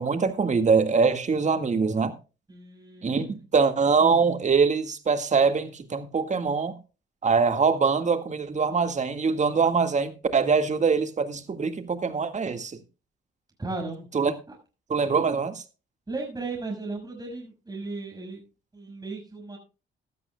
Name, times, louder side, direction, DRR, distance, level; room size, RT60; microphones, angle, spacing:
voice 1, 0.0-2.1 3.0-6.8 7.2-12.8 14.1-14.3 14.9-15.6, right 5 dB, 35° right, 1.8 m, -23 dB
voice 2, 2.5-3.4 13.6-14.1 14.5-14.6 16.1-18.4 18.7-19.6, right 3 dB, 20° right, 6.0 m, -36 dB
16.0 x 12.5 x 2.3 m
cardioid pair, 90°, 20 cm